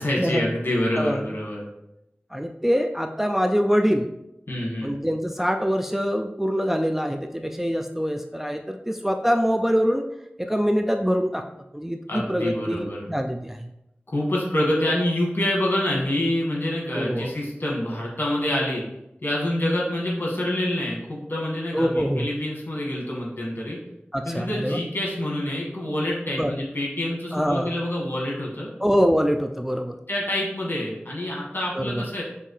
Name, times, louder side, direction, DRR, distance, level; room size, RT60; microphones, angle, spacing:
voice 1, 0.0-1.6 4.5-4.9 12.1-13.1 14.1-18.8 19.2-23.8 24.2-28.7 30.1-32.2, left 1 dB, 60° left, -3 dB, 1.7 m, -26 dB
voice 2, 2.3-4.1 4.8-10.1 10.4-11.4 11.7-13.7 16.9-17.3 21.7-22.3 24.1-24.8 26.4-26.5 27.3-27.7 28.8-30.0 31.7-32.1, equal, 5° right, 5 dB, 0.3 m, -24 dB
5.4 x 2.7 x 3.3 m, 0.85 s
wide cardioid pair, 45°, 4 cm